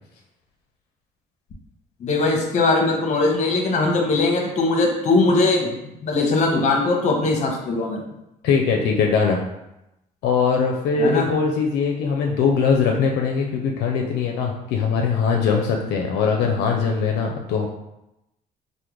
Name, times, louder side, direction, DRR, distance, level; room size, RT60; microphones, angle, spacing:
voice 1, 2.0-5.8 6.0-8.0 11.0-11.3, left 3 dB, 45° left, 1 dB, 0.7 m, -20 dB
voice 2, 8.4-9.4 10.2-17.7, left 5 dB, 80° left, 1 dB, 0.4 m, -21 dB
3.5 x 2.1 x 3.0 m, 0.89 s
cardioid pair, 110°, 17 cm